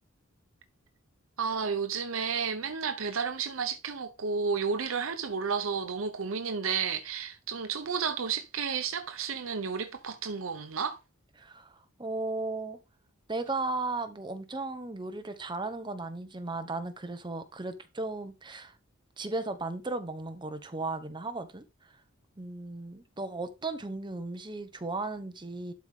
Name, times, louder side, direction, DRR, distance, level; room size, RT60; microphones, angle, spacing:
voice 1, 1.4-11.0, right 6 dB, 75° right, 0.8 m, -32 dB
voice 2, 11.4-12.8 13.3-18.8 19.2-21.9 22.4-25.7, right 2 dB, 20° right, 1.0 m, -36 dB
11.5 x 4.9 x 3.6 m
head